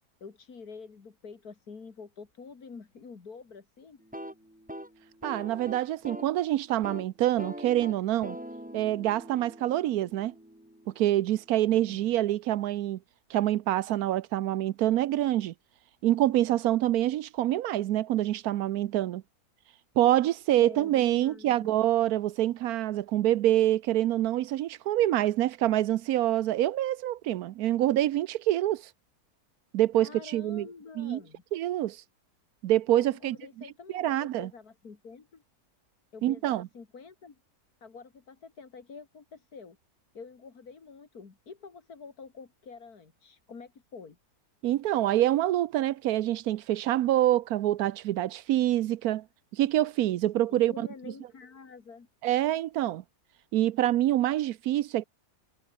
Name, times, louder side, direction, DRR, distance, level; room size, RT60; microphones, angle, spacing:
voice 1, 0.2-4.0 11.7-12.1 20.6-21.8 29.9-31.4 32.9-35.4 36.1-37.4 37.8-39.8 40.1-44.2 50.5-52.1, left 5 dB, 90° left, 2.9 m, -47 dB
sound 1, 4.0-6.4 6.7-7.1 7.4-11.2, equal, 5° right, 2.6 m, -43 dB
voice 2, 5.2-8.4 8.7-10.3 11.0-13.0 13.3-15.5 16.0-19.2 20.0-28.9 29.7-30.7 31.0-31.2 31.5-32.0 32.6-33.4 33.9-34.5 36.2-36.7 44.6-49.2 49.5-50.9 52.2-53.0 53.5-55.0, right 13 dB, 80° right, 1.1 m, -26 dB
omnidirectional pair, 1.6 m